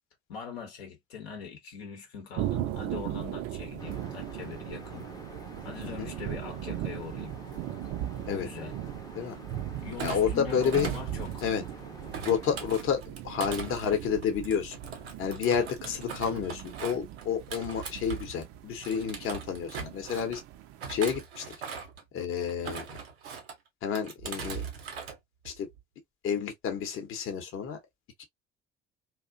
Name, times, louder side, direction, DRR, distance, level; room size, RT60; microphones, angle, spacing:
voice 1, 0.3-5.1 5.6-7.4 8.3-8.8 9.8-11.5, left 6 dB, 75° left, 0.8 m, -42 dB
sound 1, 2.4-21.2, right 13 dB, 50° right, 0.4 m, -38 dB
sound 2, 3.8-12.7, left 3 dB, 10° left, 0.5 m, -48 dB
Thump thud, 9.9-11.7 12.1-18.5 18.8-20.4 20.8-22.0 22.5-23.6 24.0-25.2 25.5-25.8, right 6 dB, 80° right, 0.7 m, -41 dB
voice 2, 10.0-10.9 11.4-11.6 12.2-14.7 15.2-20.4 20.9-21.4 22.1-22.9 23.8-24.7 25.4-25.7 26.2-27.8 28.2-28.3, left 7 dB, 45° left, 0.8 m, -30 dB
2.4 x 2.0 x 2.5 m
figure-of-eight pair, 55°, 31 cm